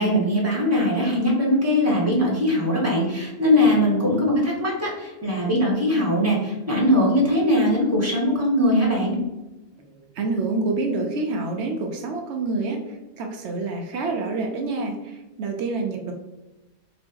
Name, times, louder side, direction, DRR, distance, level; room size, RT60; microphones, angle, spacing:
voice 1, 0.0-9.2, left 1 dB, 15° right, -3 dB, 1.4 m, -21 dB
voice 2, 10.2-16.1, right 3 dB, 85° right, 3 dB, 1.0 m, -27 dB
3.5 x 3.1 x 4.5 m, 1.0 s
omnidirectional pair, 1.1 m